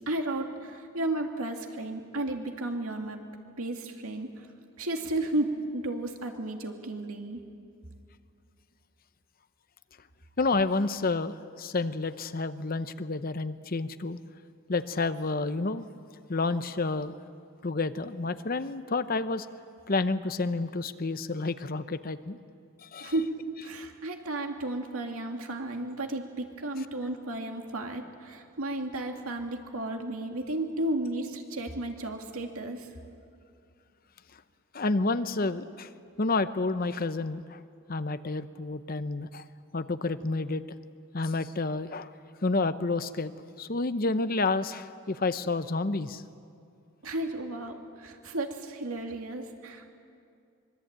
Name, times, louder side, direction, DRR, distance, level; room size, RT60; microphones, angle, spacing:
voice 1, 0.1-3.2 3.6-4.5 4.8-7.4 23.0-32.9 47.0-49.9, right 1 dB, 75° right, 3 dB, 2.5 m, -33 dB
voice 2, 10.4-14.2 14.7-15.8 16.3-17.1 17.6-19.5 19.9-22.4 22.8-23.1 34.7-35.9 36.2-37.6 37.9-39.4 39.7-40.6 41.1-42.1 42.4-43.3 43.6-46.2, left 3 dB, 40° left, 12 dB, 0.7 m, -29 dB
24.5 x 23.0 x 8.9 m, 2.4 s
head